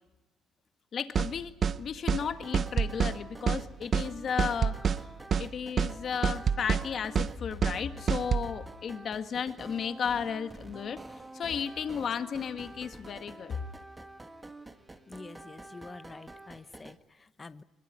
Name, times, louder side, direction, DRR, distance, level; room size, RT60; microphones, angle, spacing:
voice 1, 0.9-1.5 1.8-4.8 5.4-11.0 11.3-13.6, left 7 dB, 45° left, 8 dB, 1.8 m, -34 dB
sound 1, 1.1-1.3 1.6-1.8 2.1-2.2 2.5-3.2 3.5-3.6 3.9-4.1 4.4-5.0 5.3-5.5 5.8-5.9 6.2-6.8 7.1-7.3 7.6-7.8 8.1-8.5, right 6 dB, 40° right, 0.8 m, -26 dB
sound 2, 2.2-17.0, right 2 dB, 15° right, 1.7 m, -48 dB
voice 2, 15.1-17.6, left 3 dB, 20° left, 13 dB, 0.8 m, -47 dB
23.0 x 22.0 x 9.6 m, 1.0 s
cardioid pair, 125°, 0 cm